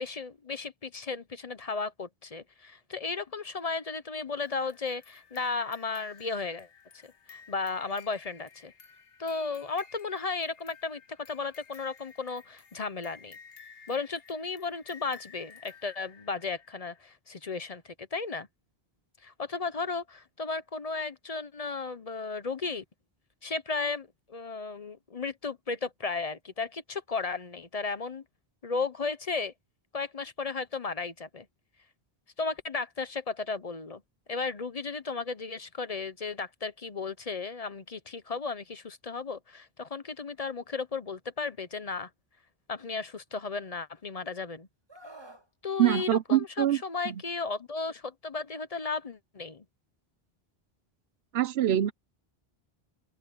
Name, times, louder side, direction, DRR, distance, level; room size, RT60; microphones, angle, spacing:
voice 1, 0.0-6.7 7.0-8.7 9.2-11.0 11.3-13.4 13.9-18.5 19.2-22.8 23.4-28.2 28.6-29.5 29.9-31.5 32.4-34.0 34.3-42.1 42.7-44.7 45.6-49.6, left 4 dB, 40° left, 0.9 m, -34 dB
sound 1, 4.4-17.0, left 5 dB, 70° left, 1.5 m, -54 dB
Screaming, 44.9-45.5 46.9-47.2, right 1 dB, 25° right, 2.0 m, -49 dB
voice 2, 45.8-46.8 47.1-47.2 51.3-51.9, right 12 dB, 80° right, 0.9 m, -24 dB
open air
omnidirectional pair, 1.0 m